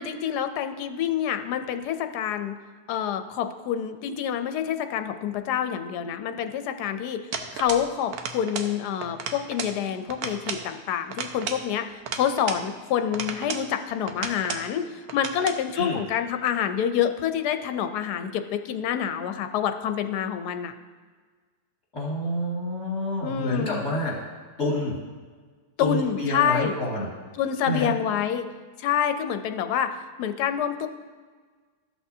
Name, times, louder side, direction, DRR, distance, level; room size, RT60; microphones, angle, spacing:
voice 1, 0.0-2.6 2.9-7.2 7.5-20.7 23.2-23.8 25.8-26.8 27.3-28.5 28.8-30.9, left 9 dB, 80° left, 8 dB, 1.1 m, -27 dB
sound 1, 7.3-7.9 8.1-8.7 9.0-9.8 10.1-10.7 11.1-12.7 13.1-13.7 14.1-14.7 15.1-15.6, right 6 dB, 70° right, 1.1 m, -33 dB
voice 2, 21.9-24.2 24.6-25.0 25.8-27.1 27.6-27.9, left 1 dB, 50° left, -5 dB, 2.5 m, -28 dB
13.5 x 6.1 x 2.7 m, 1.5 s
omnidirectional pair, 1.7 m